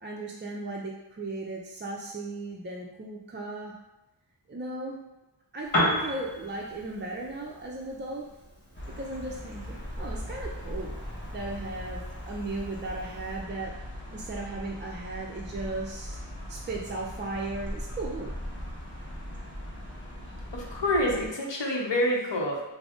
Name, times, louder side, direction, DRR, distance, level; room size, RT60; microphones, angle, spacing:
voice 1, 0.0-3.8 4.5-5.0 5.5-8.3 8.9-10.9 11.3-13.8 14.1-16.2 16.5-18.3, right 2 dB, 25° right, -3 dB, 0.4 m, -36 dB
Piano, 5.6-13.4, equal, 50° left, 1.4 m, -36 dB
sound 1, 8.7-21.3, equal, 25° left, 0.9 m, -39 dB
voice 2, 20.5-22.6, left 1 dB, 70° left, -1 dB, 0.8 m, -27 dB
4.9 x 2.0 x 2.4 m, 0.97 s
wide cardioid pair, 45°, 45 cm